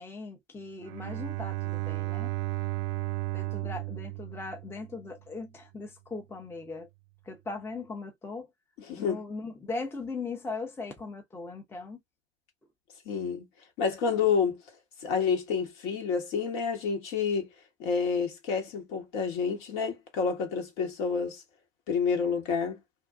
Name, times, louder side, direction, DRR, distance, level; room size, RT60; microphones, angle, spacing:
voice 1, 0.0-2.3 3.3-6.9 7.3-8.5 9.0-12.0, left 3 dB, 5° left, 0.6 m, -39 dB
Bowed string instrument, 0.8-5.1, right 22 dB, 60° right, 0.5 m, -34 dB
voice 2, 8.8-9.2 13.0-13.5 13.8-14.6 15.0-17.5 17.8-21.4 21.9-22.8, left 6 dB, 55° left, 1.3 m, -29 dB
2.6 x 2.3 x 2.3 m
hypercardioid pair, 85°, 39 cm